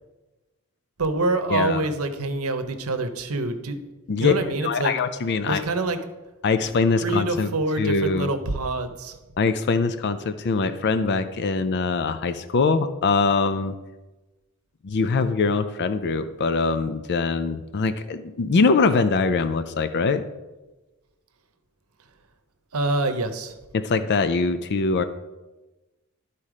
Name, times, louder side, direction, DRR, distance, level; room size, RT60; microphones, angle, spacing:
voice 1, 1.0-3.8 4.2-4.9 5.5-6.0 7.0-9.2 22.7-23.5, right 2 dB, 70° right, 9 dB, 0.8 m, -26 dB
voice 2, 1.5-1.9 4.1-4.3 4.6-5.6 6.4-7.5 7.8-8.3 9.4-13.8 14.8-20.2 23.7-25.0, left 4 dB, 50° left, 11 dB, 0.4 m, -23 dB
12.0 x 4.2 x 4.9 m, 1.1 s
head